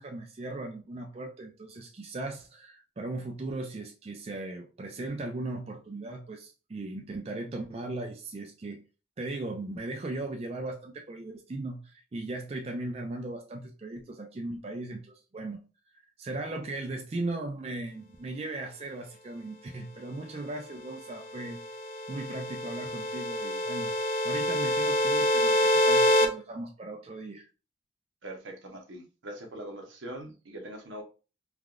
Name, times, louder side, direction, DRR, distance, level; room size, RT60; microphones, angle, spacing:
voice 1, 0.0-8.8 9.2-15.6 16.2-21.6 22.1-23.9 24.2-27.5, right 2 dB, 30° right, 0.3 m, -37 dB
sound 1, 21.3-26.3, left 1 dB, 45° left, 0.4 m, -26 dB
voice 2, 28.2-31.0, right 1 dB, 85° right, 0.8 m, -42 dB
3.4 x 2.3 x 2.4 m
head